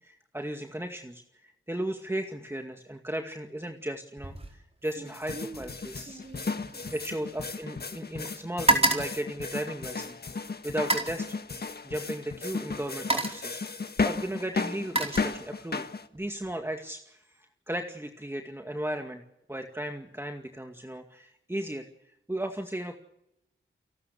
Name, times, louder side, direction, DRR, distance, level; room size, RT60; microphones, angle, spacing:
voice 1, 0.0-6.2 6.9-10.2 10.6-11.4 11.8-13.6 14.0-19.2 19.5-21.9 22.3-23.0, right 1 dB, 10° right, 4 dB, 2.2 m, -36 dB
sound 1, 4.2-4.6 4.8-8.0 8.2-10.1 10.7-11.2 12.3-12.4 12.8-13.5 14.4-15.8 16.2-16.5, right 2 dB, 30° right, 4.8 m, -30 dB
sound 2, 5.1-16.1, left 4 dB, 50° left, 1.6 m, -34 dB
29.0 x 13.0 x 8.2 m, 0.82 s
cardioid pair, 60°, 20 cm